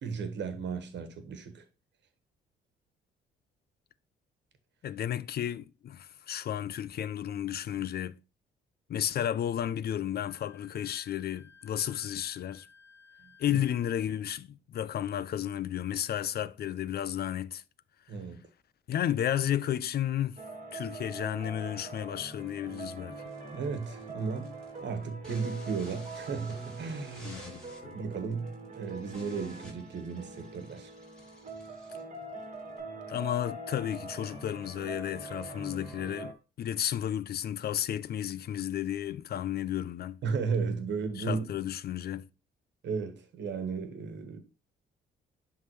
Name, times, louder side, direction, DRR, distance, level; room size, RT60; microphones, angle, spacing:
voice 1, 0.0-1.6 13.2-13.6 18.1-18.4 23.5-24.5 24.8-27.4 27.9-30.9 40.2-41.4 42.8-44.4, right 5 dB, 65° right, 1.4 m, -35 dB
voice 2, 4.8-8.2 8.9-12.7 13.4-17.6 18.9-20.4 20.7-23.2 27.2-28.0 33.1-40.2 41.2-42.3, left 10 dB, 55° left, 0.4 m, -33 dB
Wind instrument woodwind instrument, 10.2-14.0, left 6 dB, 30° left, 2.9 m, -58 dB
sound 1, 20.4-36.3, right 3 dB, 35° right, 1.8 m, -44 dB
sound 2, 23.2-32.8, left 1 dB, 5° left, 4.1 m, -55 dB
10.5 x 3.7 x 3.2 m
cardioid pair, 90°, 20 cm